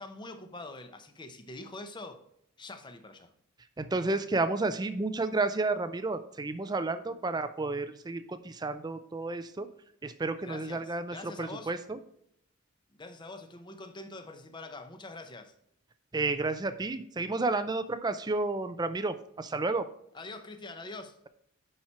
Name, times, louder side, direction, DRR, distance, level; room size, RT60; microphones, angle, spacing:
voice 1, 0.0-2.2 2.6-3.3 10.4-11.7 12.9-15.5 20.1-21.2, left 2 dB, 20° left, 0.7 m, -44 dB
voice 2, 3.8-9.7 10.0-12.0 16.1-19.9, right 3 dB, 20° right, 0.4 m, -31 dB
10.5 x 4.4 x 4.4 m
head